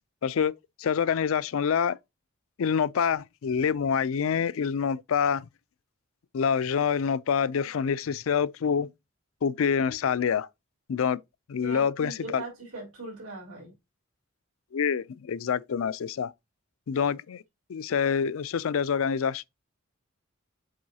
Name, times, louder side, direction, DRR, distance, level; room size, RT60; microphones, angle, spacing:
voice 1, 0.2-0.5 0.8-2.0 2.6-5.5 6.3-8.9 9.4-10.5 10.9-11.2 11.5-12.4 14.7-16.3 16.9-17.4 17.7-19.4, left 7 dB, 70° left, 0.4 m, -26 dB
voice 2, 11.6-13.7, right 2 dB, 85° right, 3.8 m, -40 dB
7.6 x 4.6 x 2.8 m
head